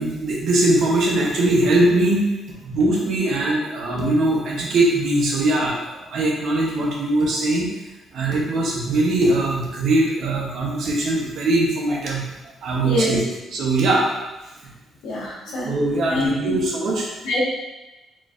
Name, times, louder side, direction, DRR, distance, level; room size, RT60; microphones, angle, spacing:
voice 1, 0.0-7.7 8.1-12.2 12.6-13.2 13.5-14.0 15.6-17.1, right 2 dB, 70° right, -2 dB, 0.9 m, -21 dB
voice 2, 15.0-15.7 16.1-16.5 17.2-17.4, left 1 dB, 85° left, -7 dB, 1.3 m, -24 dB
3.9 x 3.1 x 2.5 m, 1.0 s
cardioid pair, 90°, 0 cm